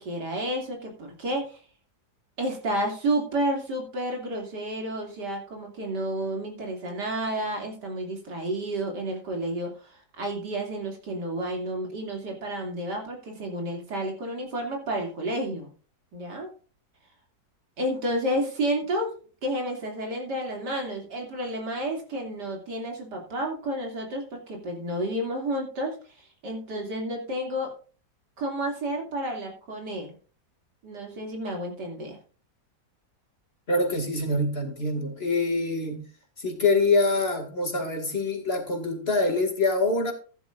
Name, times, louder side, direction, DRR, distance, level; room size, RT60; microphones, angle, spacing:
voice 1, 0.0-1.6 2.4-15.7 16.1-16.5 17.8-19.1 19.4-27.7 28.4-30.1 30.8-32.2, right 1 dB, 85° right, 3.3 m, -31 dB
voice 2, 33.7-36.0 36.4-40.1, left 2 dB, 35° left, 2.6 m, -25 dB
14.0 x 12.0 x 2.5 m
omnidirectional pair, 1.8 m